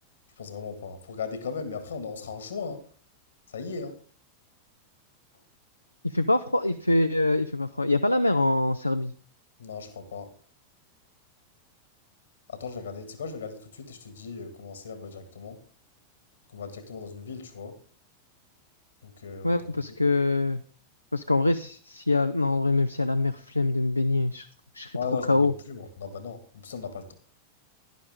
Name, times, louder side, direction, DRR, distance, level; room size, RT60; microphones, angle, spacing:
voice 1, 0.4-2.8 3.5-4.0 9.6-10.3 12.5-15.6 16.5-17.7 19.0-19.7 24.9-27.1, left 5 dB, 70° left, 10 dB, 1.8 m, -37 dB
voice 2, 6.0-9.1 19.4-20.6 21.1-24.5 24.7-25.0 25.3-25.5, left 2 dB, 85° left, 9 dB, 0.4 m, -24 dB
11.5 x 11.0 x 3.5 m, 0.42 s
figure-of-eight pair, 90°, 0 cm